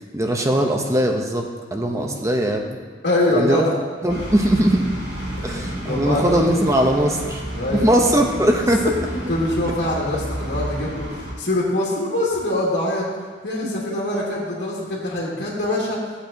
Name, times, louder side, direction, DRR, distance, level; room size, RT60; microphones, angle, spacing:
voice 1, 0.1-2.8 3.3-3.6 4.0-4.9 5.4-7.4 7.7-8.9 9.7-9.8 13.6-13.7, right 1 dB, 15° right, 2 dB, 1.0 m, -20 dB
voice 2, 3.0-3.7 5.4-6.6 7.6-7.9 9.3-13.0 13.4-16.0, left 1 dB, 75° left, -7 dB, 2.2 m, -24 dB
sound 1, 4.1-11.3, right 1 dB, 60° right, 3.5 m, -31 dB
16.0 x 8.3 x 3.0 m, 1.5 s
head